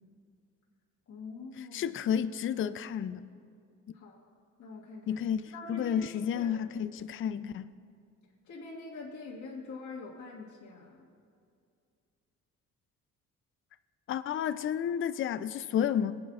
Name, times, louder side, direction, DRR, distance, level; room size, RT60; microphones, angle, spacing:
voice 1, 1.1-2.0 3.9-4.2 4.6-5.2 5.5-6.5 8.5-11.1, left 3 dB, 70° left, 1.7 m, -45 dB
voice 2, 1.6-3.3 5.1-7.7 14.1-16.2, left 8 dB, 45° left, 0.4 m, -31 dB
19.5 x 8.7 x 2.4 m
cardioid pair, 90°, 30 cm